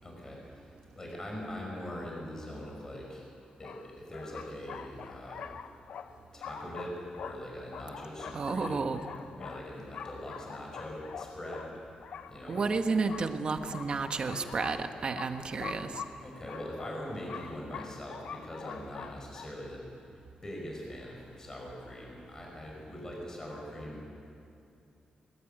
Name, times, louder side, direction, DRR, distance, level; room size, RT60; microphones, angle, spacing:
voice 1, 0.0-3.3 3.6-5.4 6.0-8.9 9.4-11.7 12.3-12.6 16.2-19.8 20.4-24.1, left 1 dB, 25° left, -2 dB, 5.4 m, -42 dB
sound 1, 2.9-3.0 3.6-19.5, left 7 dB, 65° left, 0.9 m, -45 dB
voice 2, 8.3-9.0 12.5-16.0, right 4 dB, 40° right, 7 dB, 1.4 m, -31 dB
21.5 x 20.5 x 9.1 m, 2.6 s
wide cardioid pair, 155°, 3 cm